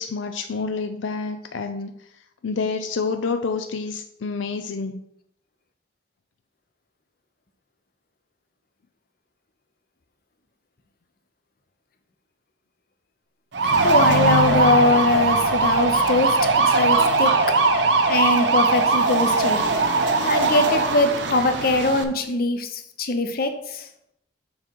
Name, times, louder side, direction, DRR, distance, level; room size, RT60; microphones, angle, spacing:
voice 1, 0.0-2.1 2.4-5.0, left 4 dB, 80° left, 7 dB, 0.5 m, -28 dB
sound 1, 13.5-22.0, right 3 dB, 70° right, 0.8 m, -20 dB
voice 2, 13.8-16.4 16.7-17.6 18.1-19.6 20.2-23.9, left 2 dB, 50° left, 7 dB, 0.8 m, -22 dB
7.0 x 3.8 x 6.3 m, 0.77 s
head